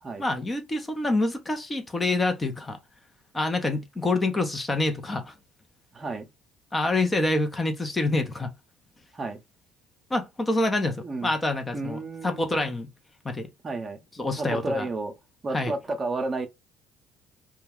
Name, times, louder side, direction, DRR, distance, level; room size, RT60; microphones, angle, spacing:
voice 1, 0.2-2.8 3.3-5.3 6.7-8.5 10.1-12.9 13.2-13.5 14.2-14.9 15.5-15.7, left 2 dB, 20° left, 0.7 m, -26 dB
voice 2, 5.9-6.3 9.1-9.4 11.0-11.3 11.7-12.7 13.6-14.0 14.3-15.1 15.4-16.5, right 2 dB, 35° right, 0.6 m, -32 dB
2.2 x 2.2 x 3.4 m
hypercardioid pair, 60°, 0 cm